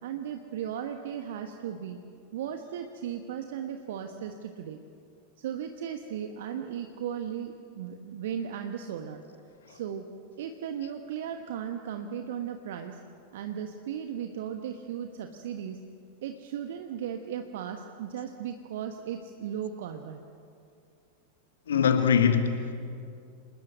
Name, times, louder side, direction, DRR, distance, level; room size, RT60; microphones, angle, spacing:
voice 1, 0.0-2.0 2.3-4.8 5.4-9.2 9.7-10.1 10.4-13.0 13.3-15.9 16.2-20.2, right 9 dB, 55° right, 1.3 m, -36 dB
voice 2, 21.7-22.7, left 7 dB, 65° left, 1.5 m, -23 dB
27.5 x 20.0 x 8.1 m
figure-of-eight pair, 90°, 0 cm